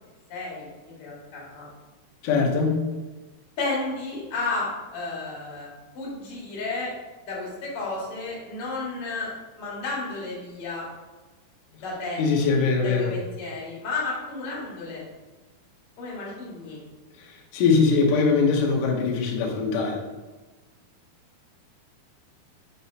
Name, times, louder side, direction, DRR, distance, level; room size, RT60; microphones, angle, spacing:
voice 1, 0.3-1.7 3.6-5.7 5.9-6.9 7.2-9.3 9.6-10.9 11.8-12.2 12.8-15.0 16.0-16.8, left 3 dB, 50° left, -5 dB, 1.8 m, -32 dB
voice 2, 2.2-2.8 12.2-13.1 17.2-20.0, left 4 dB, 80° left, 0 dB, 1.9 m, -22 dB
6.0 x 5.6 x 2.8 m, 1.2 s
omnidirectional pair, 4.9 m